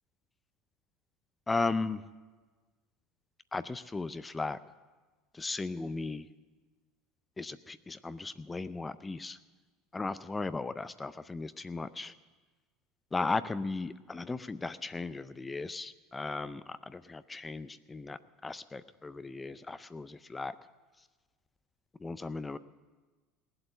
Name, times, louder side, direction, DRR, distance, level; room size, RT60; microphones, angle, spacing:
voice 1, 1.5-2.0 3.5-4.6 5.3-6.3 7.4-9.4 9.9-12.1 13.1-20.6 22.0-22.6, left 3 dB, 20° left, 14 dB, 0.5 m, -36 dB
18.0 x 7.9 x 7.9 m, 1.3 s
hypercardioid pair, 75°, 0 cm